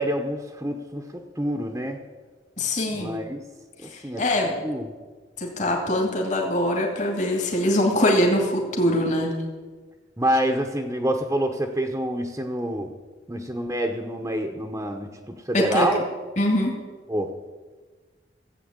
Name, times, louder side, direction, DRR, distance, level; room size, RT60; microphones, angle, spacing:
voice 1, 0.0-2.0 2.9-3.4 3.8-4.9 10.2-12.9 13.3-16.0 17.1-17.3, right 1 dB, 15° right, 2 dB, 1.0 m, -27 dB
voice 2, 2.6-3.2 3.9-4.5 5.4-9.3 15.5-15.9 16.4-16.8, left 1 dB, 40° left, 1 dB, 2.4 m, -23 dB
15.5 x 8.2 x 8.1 m, 1.4 s
head